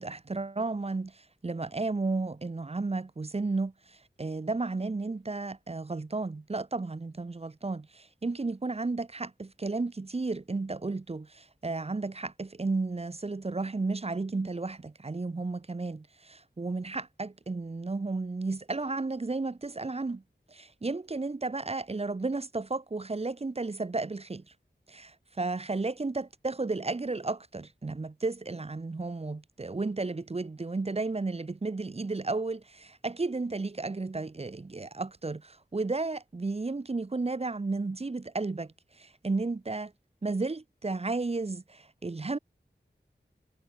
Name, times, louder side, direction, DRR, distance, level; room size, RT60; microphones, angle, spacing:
voice 1, 0.0-20.2 20.5-24.4 24.9-39.9 40.2-42.4, right 3 dB, 35° right, 0.6 m, -33 dB
wide cardioid pair, 45°, 19 cm